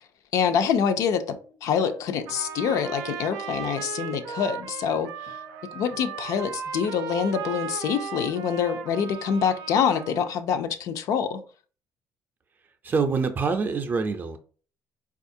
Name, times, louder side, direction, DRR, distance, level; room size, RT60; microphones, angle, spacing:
voice 1, 0.3-1.4 1.6-5.3 5.8-11.4, left 7 dB, 65° left, 0.4 m, -25 dB
sound 1, 1.1-6.5, left 5 dB, 85° left, 1.1 m, -47 dB
Trumpet, 2.3-10.3, right 7 dB, 90° right, 0.4 m, -37 dB
voice 2, 12.8-14.4, right 4 dB, 30° right, 0.5 m, -25 dB
4.2 x 2.4 x 2.6 m
cardioid pair, 115°, 6 cm